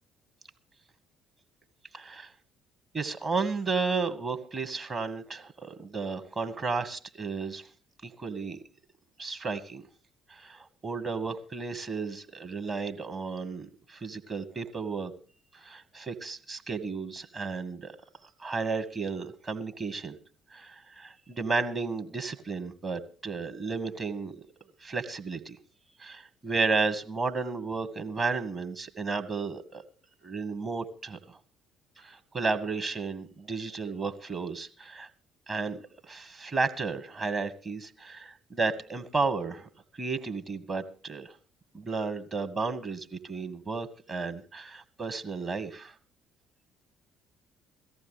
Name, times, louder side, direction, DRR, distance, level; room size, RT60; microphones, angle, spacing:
voice 1, 1.9-2.3 2.9-7.6 8.0-8.6 9.2-9.8 10.3-15.1 15.5-17.9 18.4-20.2 20.5-24.3 24.8-25.6 26.0-29.8 30.2-31.4 32.0-35.1 35.5-35.8 36.1-39.7 40.0-41.3 41.7-45.9, right 4 dB, 30° right, 8 dB, 1.3 m, -33 dB
18.0 x 14.0 x 3.2 m, 0.39 s
figure-of-eight pair, 50°, 0 cm